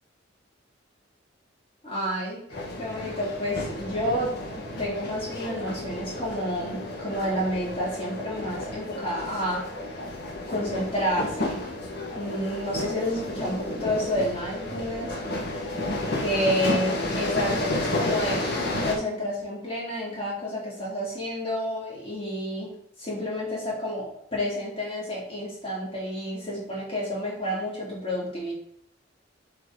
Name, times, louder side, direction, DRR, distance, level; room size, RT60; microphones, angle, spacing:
voice 1, 1.8-2.4 2.8-4.3 4.8-10.0 10.5-11.6 12.1-15.2 16.2-28.5, equal, 30° left, -5 dB, 3.1 m, -30 dB
sound 1, 2.5-19.0, left 1 dB, 50° left, 1.5 m, -31 dB
6.9 x 5.7 x 3.8 m, 0.70 s
head